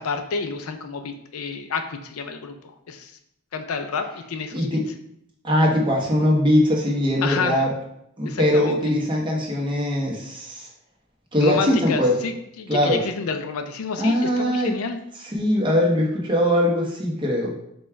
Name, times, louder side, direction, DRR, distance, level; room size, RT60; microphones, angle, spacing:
voice 1, 0.0-3.1 3.5-4.7 7.2-7.6 8.2-8.8 11.4-15.0, left 4 dB, 80° left, 7 dB, 0.5 m, -29 dB
voice 2, 4.5-4.8 5.4-7.7 8.2-10.7 11.3-12.1 12.7-13.0 14.0-14.7 15.2-17.5, left 1 dB, 20° right, -2 dB, 1.0 m, -21 dB
5.2 x 2.4 x 4.4 m, 0.75 s
head